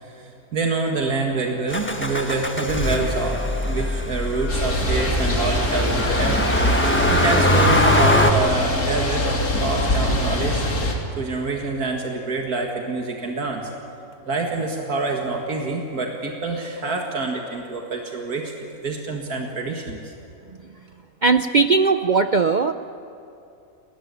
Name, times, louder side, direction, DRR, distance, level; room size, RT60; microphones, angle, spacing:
voice 1, 0.0-6.5 6.8-9.2 9.6-10.6 11.2-13.7 14.3-18.5 18.8-20.1, right 3 dB, 85° right, 1 dB, 2.4 m, -26 dB
Motor vehicle (road), 1.7-8.3, left 1 dB, 10° left, 1.3 m, -22 dB
sound 1, 4.5-10.9, left 1 dB, 80° left, 3.5 m, -23 dB
voice 2, 21.2-22.7, right 4 dB, 55° right, 9 dB, 0.5 m, -18 dB
29.5 x 14.5 x 9.7 m, 2.6 s
omnidirectional pair, 1.5 m